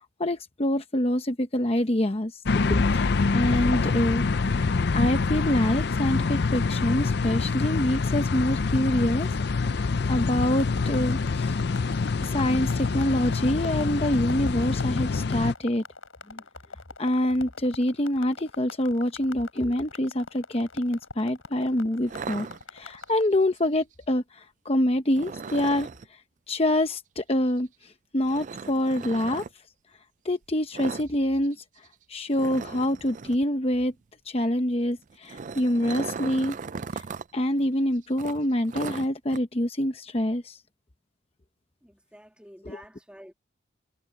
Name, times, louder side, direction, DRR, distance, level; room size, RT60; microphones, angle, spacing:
voice 1, 0.0-4.7 4.9-9.3 9.6-11.6 12.2-15.8 16.3-16.4 17.0-22.5 22.7-25.9 26.5-29.4 30.2-31.6 32.1-33.9 34.3-36.6 36.9-37.0 37.3-40.6 42.6-42.8, left 1 dB, 30° left, 0.9 m, -26 dB
sound 1, 2.5-15.5, left 4 dB, 55° left, 0.5 m, -26 dB
sound 2, 10.3-23.2, left 4 dB, 90° left, 7.3 m, -44 dB
sound 3, 22.1-23.1 25.1-26.1 28.3-29.5 30.7-31.1 31.4-31.5 31.9-32.0 32.3-33.4 35.0-37.3 37.6-37.7 38.2-39.4, right 5 dB, 40° right, 0.4 m, -37 dB
voice 2, 41.8-43.3, equal, 5° right, 1.6 m, -49 dB
head